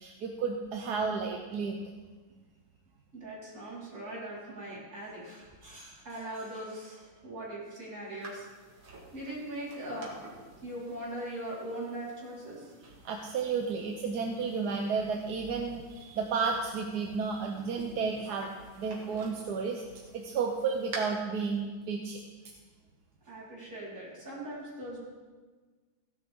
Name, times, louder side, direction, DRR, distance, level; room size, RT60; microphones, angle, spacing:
voice 1, 0.0-1.8 13.0-18.5 18.8-19.8 20.1-22.2, right 5 dB, 60° right, 2 dB, 1.3 m, -32 dB
voice 2, 3.1-8.5 9.1-10.2 10.6-12.7 23.2-25.0, right 1 dB, 40° right, -8 dB, 5.0 m, -40 dB
sound 1, 8.2-21.0, right 3 dB, 75° right, 2.8 m, -51 dB
16.5 x 11.5 x 3.7 m, 1.4 s
omnidirectional pair, 2.2 m